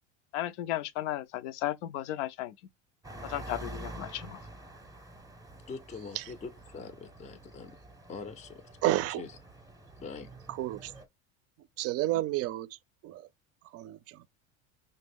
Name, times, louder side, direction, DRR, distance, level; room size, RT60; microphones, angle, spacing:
voice 1, 0.3-2.5 3.2-4.4, left 13 dB, 75° left, 0.5 m, -35 dB
sound 1, 3.0-11.0, right 1 dB, 10° right, 0.8 m, -47 dB
voice 2, 5.7-7.8 8.1-8.6 9.2-9.3 10.0-10.3, left 4 dB, 20° left, 0.5 m, -43 dB
voice 3, 8.8-9.2 10.5-10.9 11.8-12.8 13.0-13.2 13.7-14.2, right 15 dB, 40° right, 0.4 m, -30 dB
5.1 x 2.1 x 3.4 m
hypercardioid pair, 90°, 36 cm